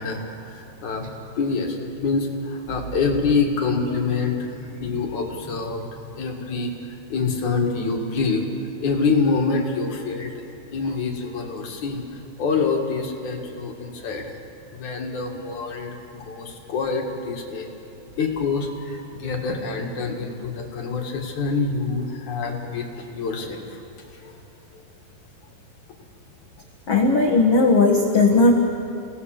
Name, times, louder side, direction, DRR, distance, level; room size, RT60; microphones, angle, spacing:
voice 1, 0.0-8.4 8.8-10.3 10.7-12.0 12.4-14.3 14.7-17.7 18.2-23.8 24.2-24.3, left 4 dB, 50° left, 1 dB, 2.7 m, -26 dB
voice 2, 26.9-28.5, left 3 dB, 70° left, 0 dB, 1.4 m, -16 dB
29.5 x 18.0 x 6.6 m, 3.0 s
omnidirectional pair, 5.2 m